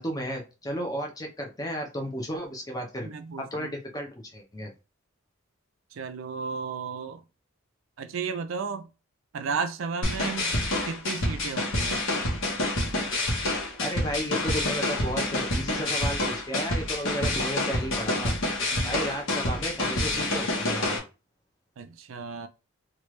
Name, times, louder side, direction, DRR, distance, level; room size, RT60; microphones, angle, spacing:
voice 1, 0.0-3.1 3.4-4.7 13.8-18.4 18.8-21.0, equal, 15° left, 0.7 m, -33 dB
voice 2, 3.0-3.7 5.9-7.2 8.0-8.9 9.3-12.0 18.7-19.0 21.8-22.5, right 5 dB, 70° right, 0.4 m, -34 dB
sound 1, 10.0-21.0, left 1 dB, 70° left, 1.1 m, -28 dB
3.1 x 2.4 x 3.1 m
head